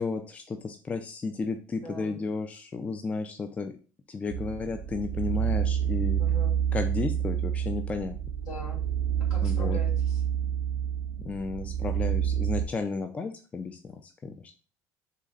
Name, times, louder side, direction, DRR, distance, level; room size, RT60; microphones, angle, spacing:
voice 1, 0.0-3.7 4.1-6.2 6.7-8.2 9.4-9.8 11.2-14.3, left 4 dB, 20° left, 7 dB, 0.4 m, -33 dB
voice 2, 1.8-2.2 6.2-6.6 8.4-8.8 9.3-10.2, left 1 dB, 75° left, -2 dB, 2.3 m, -41 dB
sound 1, 4.3-12.6, right 9 dB, 85° right, 0.5 m, -28 dB
3.9 x 3.2 x 3.8 m, 0.36 s
cardioid pair, 125°, 6 cm